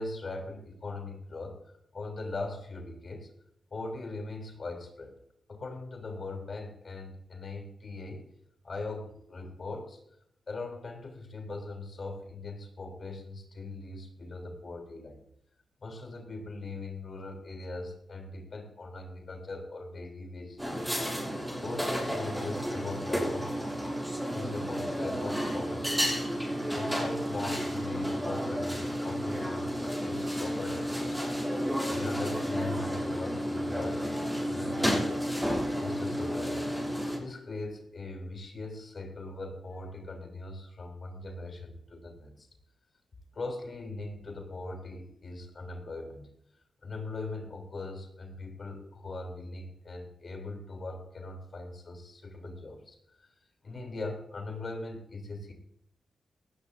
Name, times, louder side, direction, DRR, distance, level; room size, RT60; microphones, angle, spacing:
voice 1, 0.0-1.6 1.9-3.3 3.7-5.1 5.5-8.2 8.6-10.0 10.5-15.2 15.8-21.0 21.6-23.9 24.3-26.3 26.7-31.4 31.9-36.6 37.2-42.5 43.3-46.3 46.8-53.3 53.6-55.5, left 2 dB, 50° left, 4 dB, 3.3 m, -40 dB
sound 1, 20.6-37.2, equal, 5° right, 6.5 m, -31 dB
18.0 x 15.0 x 2.7 m, 0.73 s
cardioid pair, 85°, 0 cm